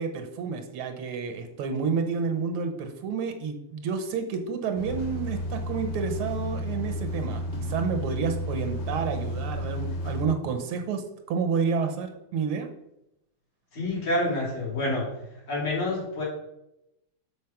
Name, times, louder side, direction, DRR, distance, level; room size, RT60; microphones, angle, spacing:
voice 1, 0.0-12.7, right 5 dB, 80° right, 6 dB, 1.8 m, -30 dB
sound 1, 4.7-10.2, equal, 65° left, 1.9 m, -32 dB
voice 2, 13.7-15.1 15.5-16.2, left 1 dB, 80° left, -5 dB, 3.9 m, -27 dB
7.1 x 4.2 x 5.9 m, 0.85 s
omnidirectional pair, 2.4 m